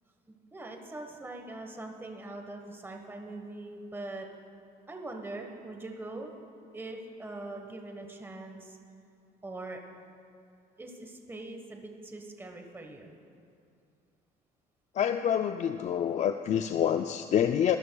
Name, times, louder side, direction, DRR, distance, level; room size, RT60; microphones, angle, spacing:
voice 1, 0.3-4.3 4.9-6.4 6.7-8.8 9.4-9.8 10.8-13.2, right 2 dB, 15° right, 3 dB, 1.2 m, -42 dB
voice 2, 14.9-17.8, left 9 dB, 45° left, 8 dB, 0.4 m, -27 dB
23.5 x 13.5 x 2.3 m, 2.5 s
cardioid pair, 110°, 17 cm